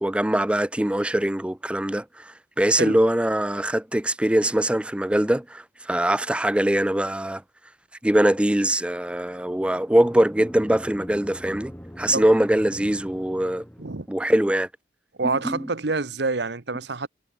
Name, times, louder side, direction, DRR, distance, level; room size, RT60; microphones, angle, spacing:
voice 1, 0.0-7.4 8.0-13.6 14.1-14.7 15.4-15.7, right 1 dB, 5° right, 0.4 m, -22 dB
sound 1, 9.3-14.2, equal, 10° left, 3.5 m, -42 dB
voice 2, 15.2-17.1, right 3 dB, 75° right, 1.1 m, -27 dB
head